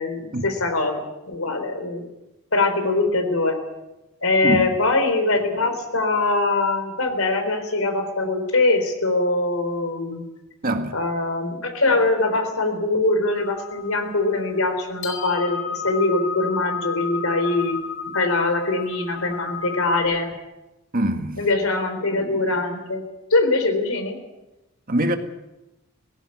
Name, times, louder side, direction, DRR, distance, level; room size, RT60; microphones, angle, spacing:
voice 1, 0.0-2.0 2.5-3.6 4.2-10.2 10.9-17.8 18.1-20.3 21.4-23.0 23.3-24.2, left 2 dB, 90° left, 4.0 m, -22 dB
voice 2, 4.4-4.7 10.6-10.9 20.9-21.4 24.9-25.2, right 1 dB, 45° right, 1.9 m, -23 dB
sound 1, 13.3-20.0, left 6 dB, 65° left, 4.6 m, -32 dB
18.5 x 15.5 x 9.8 m
head